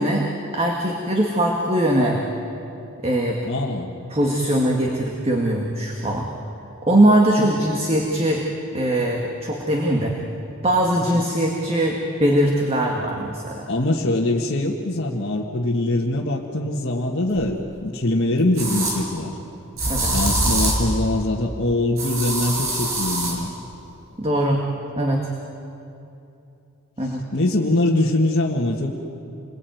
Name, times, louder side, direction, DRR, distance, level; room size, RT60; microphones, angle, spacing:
voice 1, 0.0-2.2 3.0-3.4 4.1-6.3 6.9-8.5 8.7-10.2 10.6-13.7 19.9-20.1 24.2-24.6 24.9-25.3 27.0-27.2, right 1 dB, 25° right, 0 dB, 2.0 m, -21 dB
voice 2, 3.4-3.9 7.4-7.7 11.0-11.3 13.7-19.4 20.1-23.5 27.0-29.0, left 1 dB, 50° left, -3 dB, 1.7 m, -23 dB
sound 1, 17.4-17.5 18.6-19.0 19.8-20.9 22.0-23.4, right 2 dB, 70° right, 6.3 m, -23 dB
28.0 x 22.0 x 9.3 m, 2.8 s
head